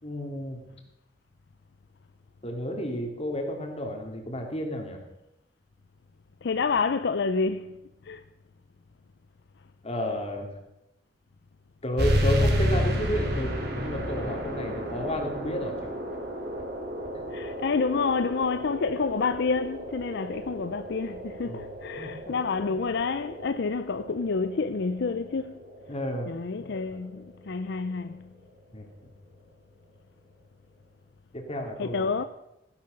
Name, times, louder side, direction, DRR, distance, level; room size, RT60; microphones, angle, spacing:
voice 1, 0.0-0.6 2.4-5.0 9.8-10.5 11.8-16.0 17.1-17.2 21.4-21.6 22.0-22.1 25.9-26.3 26.9-27.0 28.7-28.8 31.3-32.1, equal, 35° left, 2.9 m, -32 dB
voice 2, 6.4-7.8 8.0-8.2 17.3-25.6 26.3-28.3 31.8-32.2, left 4 dB, 65° left, 0.5 m, -28 dB
sound 1, 12.0-27.1, equal, 60° right, 3.5 m, -31 dB
15.5 x 11.0 x 6.6 m
head